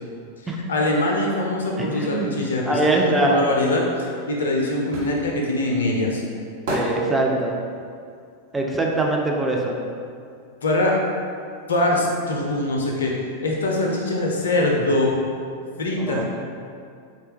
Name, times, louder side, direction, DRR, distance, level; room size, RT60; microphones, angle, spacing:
voice 1, 0.7-6.2 10.6-10.9 11.7-13.1 13.4-15.2 15.8-16.2, left 1 dB, 65° left, -1 dB, 0.4 m, -23 dB
voice 2, 1.8-2.3 2.7-3.4 6.7-7.6 8.5-9.8 16.0-16.2, right 2 dB, 10° right, -1 dB, 0.4 m, -22 dB
sound 1, 4.0-9.9 10.2-11.8 12.0-12.1, equal, 55° right, 0.8 m, -33 dB
3.2 x 2.2 x 2.9 m, 2.3 s
figure-of-eight pair, 90°, 0 cm